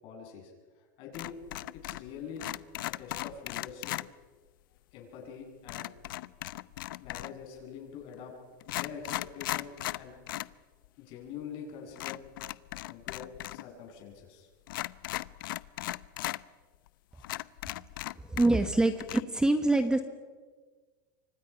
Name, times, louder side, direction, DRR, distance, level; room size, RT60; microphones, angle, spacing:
voice 1, 0.0-1.4 1.7-2.5 2.8-3.9 4.9-5.9 7.0-8.4 8.7-10.2 11.0-12.2 12.9-14.5, left 7 dB, 50° left, 1 dB, 7.9 m, -45 dB
sound 1, 1.1-2.1 2.4-4.1 5.7-7.4 8.1-8.2 8.6-10.5 10.8-10.9 12.0-13.6 13.9-14.0 14.7-16.4 16.9-17.0 17.2-18.7 19.0-19.2, left 16 dB, 85° left, 0.7 m, -37 dB
voice 2, 18.2-20.0, right 2 dB, 5° right, 9 dB, 1.2 m, -25 dB
28.5 x 25.0 x 5.9 m, 1.4 s
supercardioid pair, 145°, 11 cm